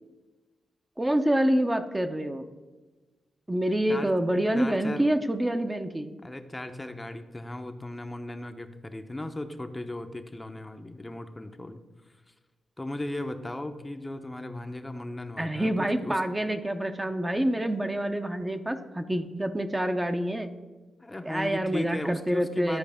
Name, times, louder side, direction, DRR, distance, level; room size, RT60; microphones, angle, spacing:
voice 1, 1.0-2.5 3.5-6.1 15.4-20.5 21.2-22.8, right 1 dB, 15° right, 7 dB, 0.7 m, -27 dB
voice 2, 4.5-5.1 6.2-11.8 12.8-16.2 21.0-22.8, left 1 dB, 20° left, 7 dB, 0.7 m, -36 dB
12.0 x 4.7 x 3.5 m, 1.2 s
cardioid pair, 55°, 0 cm